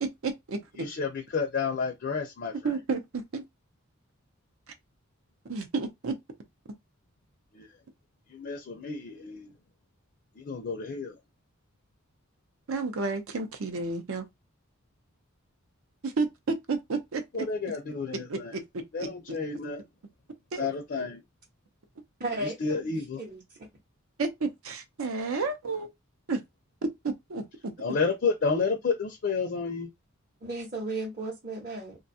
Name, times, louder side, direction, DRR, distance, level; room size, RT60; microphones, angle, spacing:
voice 1, 0.0-0.6 2.6-3.4 5.5-6.2 12.7-14.3 16.0-17.2 18.1-19.1 20.5-20.7 24.2-25.9 26.3-26.4 27.0-27.7, right 4 dB, 80° right, 0.6 m, -31 dB
voice 2, 0.8-2.7 7.5-7.7 8.3-9.5 10.4-11.1 17.3-18.5 18.9-19.8 20.6-21.2 22.4-23.2 27.8-29.9, left 4 dB, 50° left, 0.4 m, -31 dB
voice 3, 22.2-22.8 23.1-23.4 30.4-32.0, right 2 dB, 40° right, 0.8 m, -34 dB
2.5 x 2.3 x 2.6 m
head